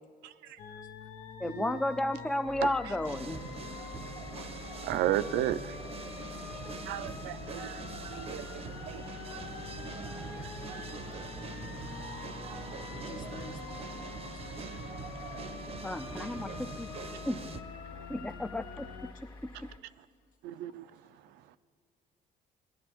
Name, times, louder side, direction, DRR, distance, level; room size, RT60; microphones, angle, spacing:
voice 1, 0.2-0.6 1.4-1.6 2.6-2.7 4.8-5.8 6.9-7.8 8.1-9.1 15.3-15.4 20.4-20.8, right 13 dB, 85° right, 0.5 m, -34 dB
sound 1, 0.6-19.1, left 7 dB, 85° left, 0.7 m, -46 dB
voice 2, 1.4-3.4 15.8-16.9 17.3-17.4 18.1-18.9, left 1 dB, 5° left, 0.4 m, -32 dB
sound 2, 2.5-19.8, left 2 dB, 30° left, 1.4 m, -50 dB
sound 3, 3.0-17.6, right 5 dB, 35° right, 0.6 m, -43 dB
voice 3, 4.1-4.5 6.5-6.7 7.8-7.9 9.5-9.6 10.0-10.9 11.2-11.3 12.4-12.5 12.9-13.8 16.4-16.5 17.0-17.1 17.9-18.1 19.1-19.3 19.7-19.8 20.7-20.8, left 5 dB, 50° left, 1.0 m, -53 dB
19.0 x 11.0 x 3.0 m
cardioid pair, 110°, 17 cm